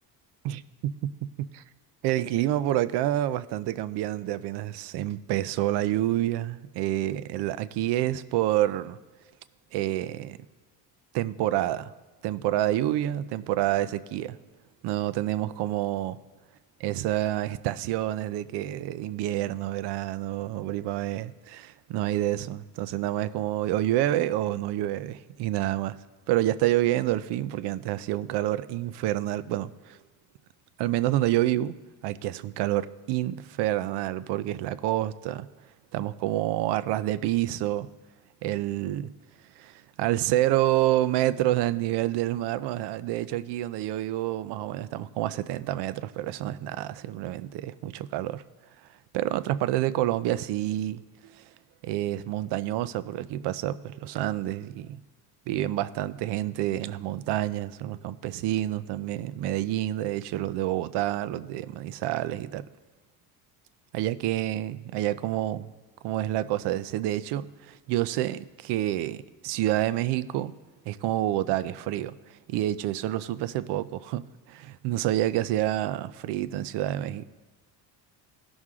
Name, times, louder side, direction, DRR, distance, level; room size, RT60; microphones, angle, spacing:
voice 1, 0.4-1.6 2.0-9.0 9.7-10.4 11.1-11.9 12.2-14.4 14.8-16.2 16.8-26.0 26.3-30.0 30.8-31.8 32.0-35.5 35.9-37.9 38.4-39.1 39.6-48.4 49.1-51.4 51.8-55.0 55.5-62.7 63.9-65.7 66.0-70.5 70.9-77.3, right 14 dB, 80° right, 0.6 m, -28 dB
16.5 x 6.3 x 3.6 m
cardioid pair, 130°, 40 cm